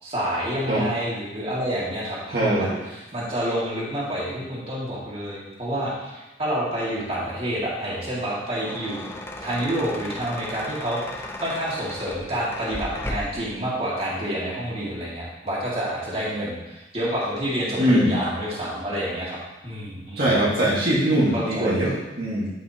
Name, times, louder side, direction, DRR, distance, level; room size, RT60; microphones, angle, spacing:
voice 1, 0.0-9.0 9.4-19.4 19.6-20.4 21.3-21.8, equal, 35° right, -6 dB, 2.3 m, -28 dB
voice 2, 2.3-2.7 17.8-18.2 20.2-22.5, right 1 dB, 60° right, -7 dB, 1.9 m, -21 dB
sound 1, 8.4-13.5, left 1 dB, 15° left, 0.6 m, -36 dB
13.0 x 5.5 x 3.0 m, 1.0 s
head